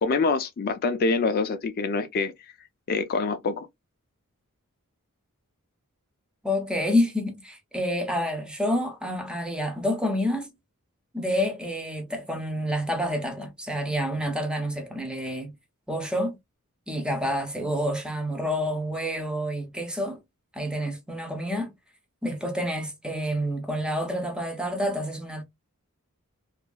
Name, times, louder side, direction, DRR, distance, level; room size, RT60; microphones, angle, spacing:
voice 1, 0.0-2.3 2.9-3.7, left 4 dB, 45° left, 0.3 m, -25 dB
voice 2, 6.4-10.5 11.1-15.5 15.9-16.4 16.9-20.2 20.5-21.7 22.2-25.4, equal, 5° right, 0.6 m, -28 dB
2.8 x 2.4 x 2.2 m
head